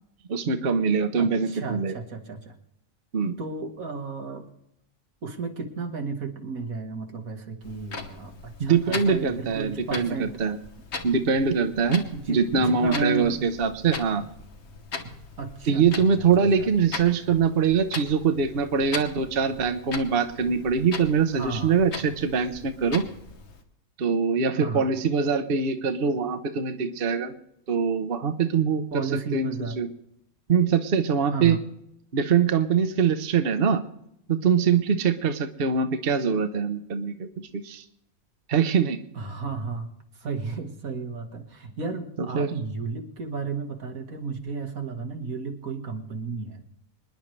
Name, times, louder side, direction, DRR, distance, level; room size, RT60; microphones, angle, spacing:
voice 1, 0.3-2.0 3.1-3.4 8.6-10.6 11.0-14.2 15.7-23.1 24.0-27.3 27.7-29.0 29.3-29.5 29.8-29.9 30.5-31.6 32.1-33.8 34.3-37.3 37.5-37.8 38.5-39.0 42.3-42.5, right 6 dB, 45° right, 8 dB, 1.0 m, -23 dB
voice 2, 1.2-2.6 3.4-4.5 5.2-10.3 12.1-13.4 15.4-16.7 21.3-21.8 24.6-24.9 28.9-29.8 31.3-31.6 39.1-39.9 40.1-46.6, right 4 dB, 90° right, 4 dB, 2.1 m, -33 dB
Clock, 7.6-23.6, left 4 dB, 55° left, 1.5 m, -40 dB
26.0 x 10.5 x 3.2 m, 0.78 s
omnidirectional pair, 1.4 m